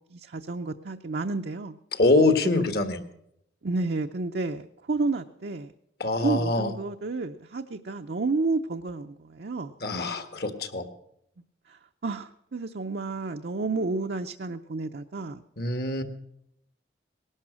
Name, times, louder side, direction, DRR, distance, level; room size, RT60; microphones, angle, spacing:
voice 1, 0.1-1.8 3.6-5.7 6.2-9.7 11.7-15.4, right 3 dB, 65° right, 5 dB, 0.6 m, -31 dB
voice 2, 1.9-3.0 6.0-6.7 9.8-10.9 15.6-16.0, left 2 dB, 60° left, 9 dB, 1.6 m, -24 dB
19.0 x 12.0 x 6.2 m, 0.77 s
head